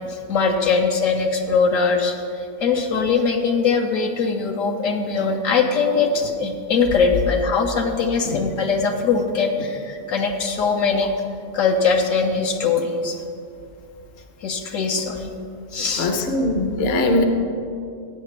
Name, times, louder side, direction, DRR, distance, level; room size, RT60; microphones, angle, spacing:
voice 1, 0.1-11.1 11.5-13.2 14.4-15.3 15.7-16.1, left 5 dB, 75° left, 3 dB, 1.1 m, -21 dB
voice 2, 16.0-17.2, left 2 dB, 55° left, 5 dB, 1.0 m, -20 dB
14.5 x 9.0 x 3.2 m, 2.6 s
omnidirectional pair, 1.4 m